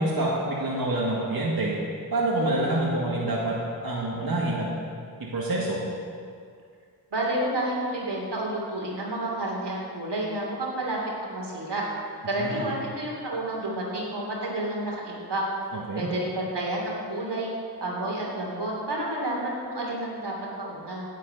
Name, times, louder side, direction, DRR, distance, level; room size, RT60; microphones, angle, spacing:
voice 1, 0.0-1.8 2.1-3.6 3.8-4.7 5.2-5.8 12.4-12.7 15.7-16.1, right 1 dB, 60° right, -5 dB, 2.0 m, -27 dB
voice 2, 7.1-11.8 12.3-15.4 15.9-17.5 17.8-21.1, right 1 dB, 85° right, -3 dB, 3.1 m, -30 dB
11.0 x 7.5 x 9.1 m, 2.2 s
cardioid pair, 55°, 40 cm